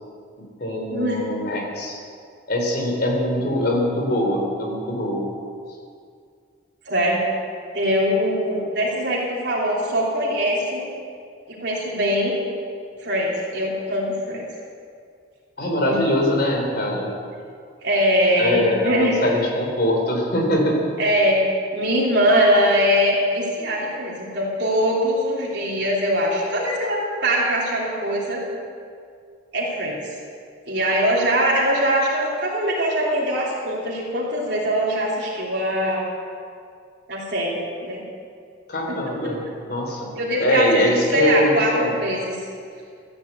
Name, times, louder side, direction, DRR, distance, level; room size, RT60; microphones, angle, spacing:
voice 1, 0.6-2.0 2.5-5.3 15.6-17.1 18.4-20.8 38.7-39.4 39.7-40.1 40.4-41.9, left 1 dB, 55° left, 0 dB, 3.5 m, -22 dB
voice 2, 6.9-7.2 7.7-10.9 11.5-12.3 13.0-14.4 15.8-16.3 17.8-19.1 21.0-21.4 21.7-28.4 29.5-30.0 30.7-36.0 37.1-38.0 38.9-39.0 40.1-42.4, equal, 65° right, -5 dB, 3.3 m, -22 dB
14.0 x 9.6 x 8.2 m, 2.2 s
head